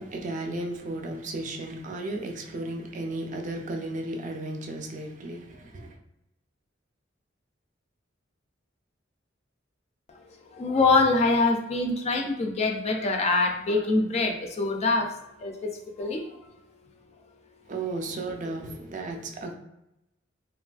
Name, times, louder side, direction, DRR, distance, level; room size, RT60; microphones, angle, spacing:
voice 1, 0.0-6.0 17.7-19.5, right 2 dB, 40° right, 0.4 m, -34 dB
voice 2, 10.5-15.1 15.4-15.7 16.0-16.2, left 3 dB, 35° left, 0.3 m, -24 dB
2.9 x 2.4 x 2.3 m
head